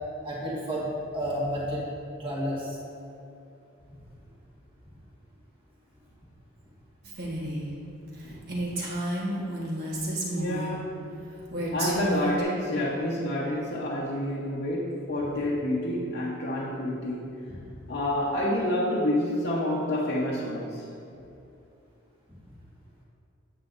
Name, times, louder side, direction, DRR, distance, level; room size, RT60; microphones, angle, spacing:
voice 1, 0.2-1.8 2.2-2.8 17.5-17.8, equal, 25° right, -5 dB, 1.6 m, -31 dB
Female speech woman speaking, 7.0-7.7 8.1-8.2 8.5-10.8 11.5-12.4, right 1 dB, 45° right, 1.3 m, -31 dB
voice 2, 10.3-11.1 11.7-17.5 17.9-20.9, left 1 dB, 50° left, -6 dB, 0.9 m, -28 dB
9.5 x 8.1 x 2.6 m, 2.7 s
head